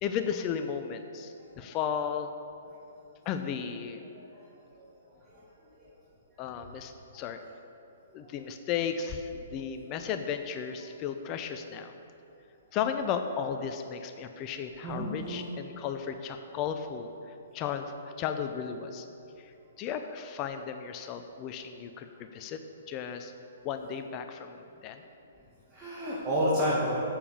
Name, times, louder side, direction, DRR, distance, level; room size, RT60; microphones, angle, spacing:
voice 1, 0.0-2.3 3.3-4.0 6.4-7.4 8.1-11.9 12.7-19.1 19.4-22.6 22.9-23.3 23.6-25.0, left 7 dB, 30° left, 7 dB, 0.5 m, -35 dB
voice 2, 4.1-4.5 4.8-4.9 5.2-5.4 5.8-5.9 7.1-7.2 8.2-8.3 14.8-15.4 25.7-27.0, equal, 20° right, -8 dB, 2.0 m, -31 dB
7.2 x 6.8 x 7.1 m, 2.7 s
figure-of-eight pair, 120°, 0 cm